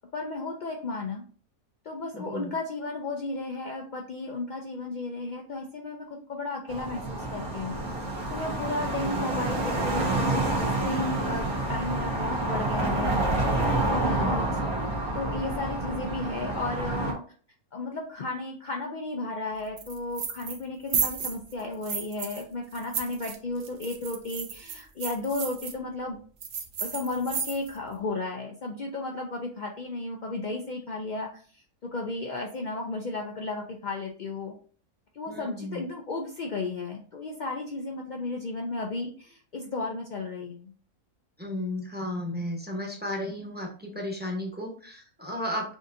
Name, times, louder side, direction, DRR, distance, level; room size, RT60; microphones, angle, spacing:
voice 1, 0.1-1.2 1.8-7.8 8.3-13.5 13.9-14.5 15.1-17.2 17.7-26.2 26.8-34.5 35.1-40.7, left 3 dB, 75° left, 1 dB, 0.4 m, -34 dB
voice 2, 2.1-2.5 9.0-9.3 13.8-14.3 35.3-35.8 41.4-45.7, left 1 dB, 10° right, 0 dB, 0.7 m, -34 dB
sound 1, 6.7-17.1, right 2 dB, 85° right, 1.5 m, -28 dB
sound 2, 19.8-20.6 20.9-22.4 22.7-25.7 26.4-27.8, right 6 dB, 55° right, 0.6 m, -33 dB
6.1 x 2.7 x 2.6 m, 0.43 s
omnidirectional pair, 1.5 m